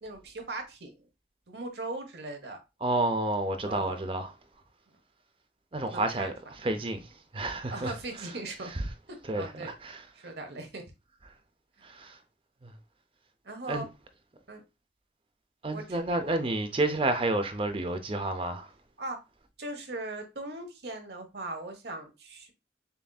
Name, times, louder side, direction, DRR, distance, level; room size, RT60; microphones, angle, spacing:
voice 1, 0.0-0.9 1.5-2.6 3.6-4.0 5.8-6.3 6.8-6.9 7.7-8.7 9.1-9.7 10.2-10.8 13.4-13.9 14.5-14.6 15.7-16.5 19.0-19.2 19.6-22.5, right 2 dB, 65° right, 1.0 m, -39 dB
voice 2, 2.8-4.3 5.7-6.3 6.6-7.1 7.3-7.9 9.3-10.0 11.8-12.2 12.6-12.7 13.7-13.9 15.6-18.7, right 2 dB, 30° right, 0.5 m, -30 dB
6.8 x 2.6 x 2.3 m
head